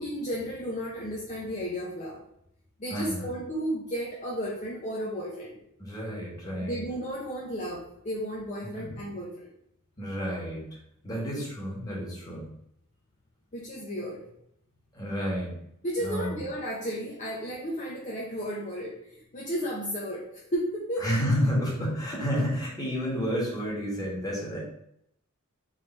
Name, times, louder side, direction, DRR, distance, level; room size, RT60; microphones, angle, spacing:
voice 1, 0.0-2.2 2.8-5.6 6.7-9.5 13.5-14.2 15.8-21.1, equal, 35° left, -4 dB, 0.7 m, -33 dB
voice 2, 2.9-3.3 5.8-6.8 8.6-9.0 10.0-10.7 11.0-12.5 14.9-15.5 16.0-16.4 21.0-24.6, equal, 20° left, -5 dB, 1.6 m, -30 dB
3.8 x 3.3 x 4.0 m, 0.74 s
head